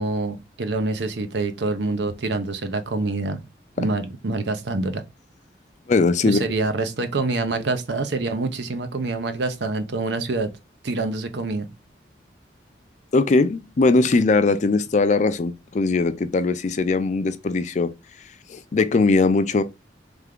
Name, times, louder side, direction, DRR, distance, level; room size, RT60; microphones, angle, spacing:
voice 1, 0.0-3.4 3.8-5.0 6.3-10.5 10.8-11.7, right 3 dB, 70° right, 0.7 m, -26 dB
voice 2, 5.9-6.4 13.1-17.9 18.5-19.6, left 3 dB, 40° left, 0.4 m, -20 dB
3.5 x 3.3 x 3.6 m
head